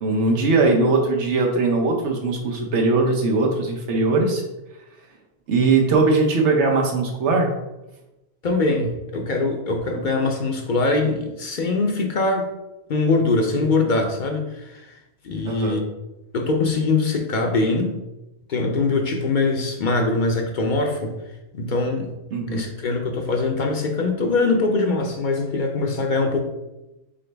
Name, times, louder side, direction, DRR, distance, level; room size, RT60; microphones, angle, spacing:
voice 1, 0.0-4.4 5.5-7.5 15.4-15.8 22.3-22.6, right 3 dB, 90° right, 1 dB, 1.2 m, -20 dB
voice 2, 8.4-12.5 12.9-15.0 15.2-15.8 16.3-17.9 18.5-21.1 21.5-22.1 22.5-26.4, left 3 dB, 55° left, 2 dB, 0.7 m, -22 dB
4.1 x 3.8 x 3.3 m, 0.97 s
omnidirectional pair, 1.2 m